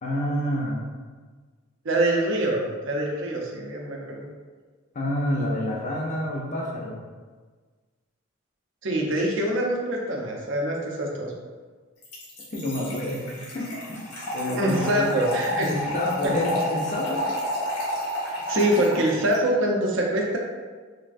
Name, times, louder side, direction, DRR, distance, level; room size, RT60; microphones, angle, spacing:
voice 1, 0.0-0.8 4.9-7.0 12.5-15.1 15.6-17.2, left 1 dB, 35° left, -3 dB, 0.4 m, -28 dB
voice 2, 1.8-4.3 8.8-11.3 14.6-15.7 16.2-16.3 18.5-20.4, right 1 dB, 55° right, -1 dB, 0.5 m, -24 dB
Trickle dribble / Fill (with liquid), 12.0-19.4, left 1 dB, 90° left, 1.0 m, -31 dB
3.2 x 2.3 x 2.5 m, 1.4 s
head